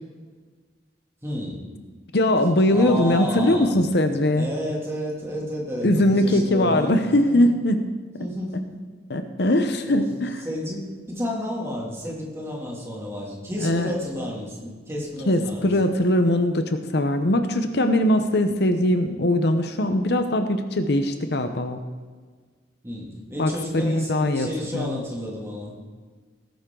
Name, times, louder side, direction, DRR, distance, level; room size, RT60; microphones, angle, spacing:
voice 1, 1.2-1.6 2.7-3.7 4.3-6.9 7.3-7.4 8.2-8.7 9.9-10.1 10.4-15.9 22.8-25.7, equal, 15° right, -3 dB, 2.7 m, -31 dB
voice 2, 2.1-4.5 5.8-7.8 9.1-10.4 13.6-13.9 15.3-21.8 23.4-25.0, left 1 dB, 65° left, 7 dB, 0.9 m, -21 dB
18.0 x 10.5 x 3.9 m, 1.5 s
head